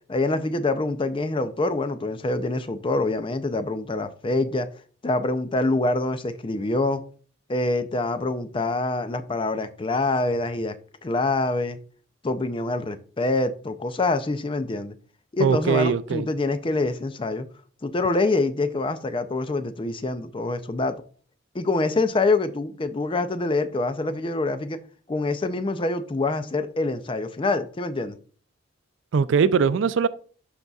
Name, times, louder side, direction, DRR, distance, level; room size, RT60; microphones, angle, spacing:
voice 1, 0.1-4.7 5.0-7.0 7.5-10.8 11.0-11.8 12.2-14.9 15.3-17.5 17.8-21.0 21.5-24.8 25.1-28.2, left 2 dB, 25° left, 0.4 m, -25 dB
voice 2, 15.4-16.3 29.1-30.1, right 6 dB, 65° right, 0.4 m, -21 dB
11.5 x 4.0 x 2.4 m
head